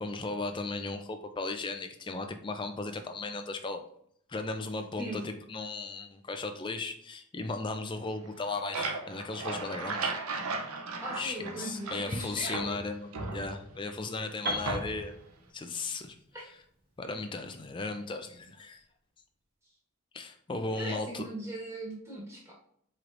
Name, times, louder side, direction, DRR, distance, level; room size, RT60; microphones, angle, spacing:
voice 1, 0.0-3.8 4.3-10.1 11.1-15.1 15.5-16.2 17.0-18.8 20.1-21.2, left 3 dB, 20° left, 7 dB, 0.3 m, -36 dB
sound 1, 8.3-12.2 12.5-13.9 14.6-15.2, right 3 dB, 85° right, 0.6 m, -36 dB
voice 2, 11.0-12.8 16.3-16.5 20.7-22.5, right 1 dB, 10° right, -5 dB, 1.3 m, -39 dB
Piano, 14.5-18.4, equal, 45° right, 1.0 m, -40 dB
4.6 x 3.2 x 2.5 m, 0.69 s
head